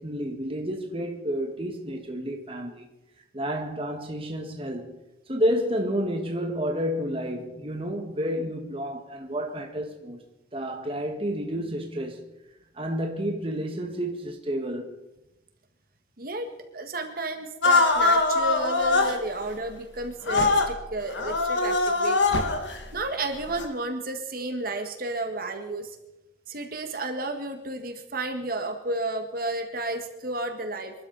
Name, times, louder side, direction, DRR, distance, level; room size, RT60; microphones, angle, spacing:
voice 1, 0.0-2.9 3.3-5.0 5.3-10.2 10.5-12.2 12.7-15.0, equal, 30° right, 1.7 m, -30 dB
voice 2, 16.2-16.5 16.7-22.2 22.5-26.0 26.5-30.9, right 2 dB, 50° right, 1.7 m, -32 dB
sound 1, 17.6-19.2 20.3-20.7 21.1-22.8 23.5-23.7, left 3 dB, 85° left, 2.2 m, -22 dB
27.0 x 12.0 x 4.1 m
head